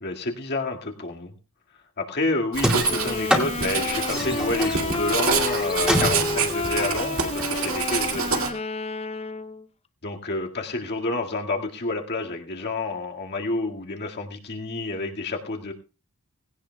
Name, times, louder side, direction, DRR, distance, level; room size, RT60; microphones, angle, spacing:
voice 1, 0.0-1.3 2.0-8.5 10.0-15.7, left 2 dB, 50° left, 2 dB, 2.0 m, -29 dB
Writing, 2.5-8.5, right 6 dB, 70° right, 2.3 m, -27 dB
sound 1, 2.6-7.8, equal, 5° right, 2.4 m, -27 dB
sound 2, 2.8-9.6, left 3 dB, 30° left, 0.6 m, -30 dB
19.0 x 16.5 x 2.3 m, 0.32 s
head